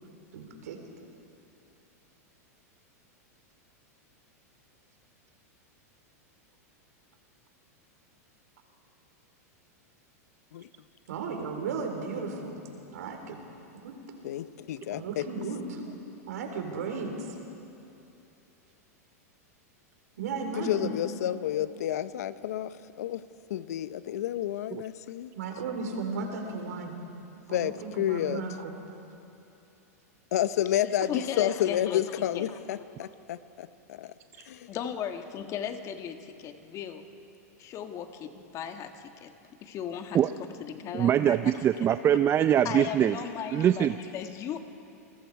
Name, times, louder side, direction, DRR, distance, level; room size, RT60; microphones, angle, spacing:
voice 1, 0.3-0.8 11.1-12.6 12.9-13.4 13.8-13.9 14.9-15.8 16.3-17.1 20.2-20.9 25.3-26.9 27.5-28.7, right 4 dB, 75° right, 3 dB, 3.9 m, -35 dB
voice 2, 14.2-15.3 20.5-23.2 23.5-25.3 27.5-28.5 30.3-34.1 34.5-34.7, left 12 dB, 75° left, 14 dB, 0.8 m, -30 dB
voice 3, 31.1-32.0 32.3-32.6 34.7-37.0 37.6-38.9 39.2-39.3 39.6-40.2 40.6-41.9 42.6-44.6, left 8 dB, 35° left, 6 dB, 1.6 m, -36 dB
voice 4, 40.9-43.2 43.5-43.9, right 10 dB, 30° right, 11 dB, 0.5 m, -23 dB
29.0 x 20.0 x 4.8 m, 2.8 s
hypercardioid pair, 115°, 9 cm